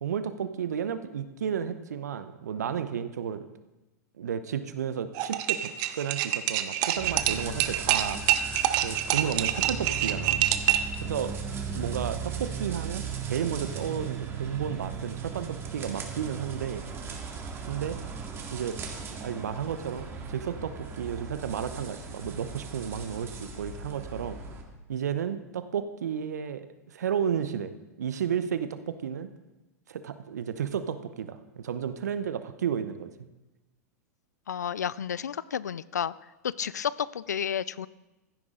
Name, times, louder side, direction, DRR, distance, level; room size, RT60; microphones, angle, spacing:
voice 1, 0.0-3.5 4.2-8.2 8.8-10.4 11.0-11.3 11.7-16.8 17.7-18.0 18.5-18.8 19.0-24.4 24.9-27.7 28.0-29.3 29.9-33.3, right 8 dB, 75° right, 12 dB, 0.8 m, -32 dB
sound 1, 5.1-10.9, right 13 dB, 50° right, 0.9 m, -26 dB
sound 2, 7.0-24.6, right 5 dB, 30° right, 2.0 m, -37 dB
voice 2, 34.5-36.1 36.4-37.9, left 8 dB, 85° left, 20 dB, 0.4 m, -31 dB
15.0 x 9.6 x 3.8 m, 1.1 s
hypercardioid pair, 100°, 9 cm